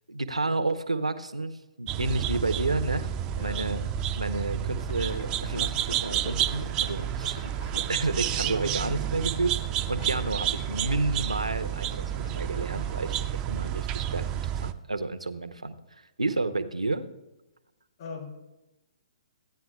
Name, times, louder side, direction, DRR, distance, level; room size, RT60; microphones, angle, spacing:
voice 1, 0.1-1.5 1.8-3.1 3.3-3.8 4.2-7.5 7.9-9.6 9.9-15.7 16.2-17.1, right 2 dB, 85° right, 11 dB, 0.6 m, -30 dB
sound 1, 1.9-14.7, right 10 dB, 25° right, 0.4 m, -30 dB
voice 2, 3.3-3.8 10.0-10.1 18.0-18.4, left 4 dB, 45° left, 1 dB, 2.8 m, -41 dB
sound 2, 4.5-13.4, left 2 dB, 80° left, 1.0 m, -46 dB
15.0 x 9.3 x 2.3 m, 0.98 s
figure-of-eight pair, 125°, 3 cm